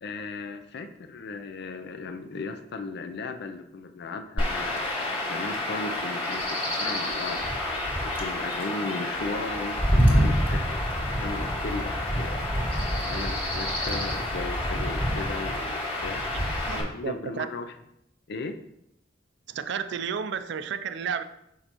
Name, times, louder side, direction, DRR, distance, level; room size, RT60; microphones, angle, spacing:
voice 1, 0.0-4.9 5.2-7.4 8.0-12.4 13.0-16.3 16.7-17.7 18.3-18.6, left 3 dB, 60° left, 8 dB, 0.5 m, -36 dB
Chirp tweet / Wind / Stream, 4.4-16.8, equal, 30° left, 1.9 m, -27 dB
voice 2, 16.3-17.5 19.5-21.2, right 7 dB, 65° right, 11 dB, 0.4 m, -32 dB
6.4 x 5.3 x 3.0 m, 0.79 s
head